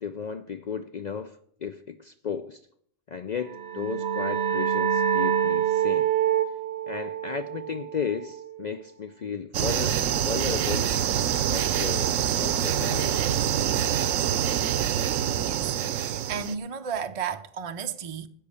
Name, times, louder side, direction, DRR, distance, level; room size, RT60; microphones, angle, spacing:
voice 1, 0.0-2.6 3.1-6.2 6.9-10.9 11.5-13.3, left 6 dB, 65° left, 0.4 m, -34 dB
sound 1, 3.4-8.8, right 9 dB, 65° right, 0.9 m, -27 dB
sound 2, 9.5-16.6, right 9 dB, 80° right, 1.0 m, -25 dB
voice 2, 15.4-18.3, right 7 dB, 45° right, 0.4 m, -34 dB
10.5 x 6.5 x 8.3 m
omnidirectional pair, 1.3 m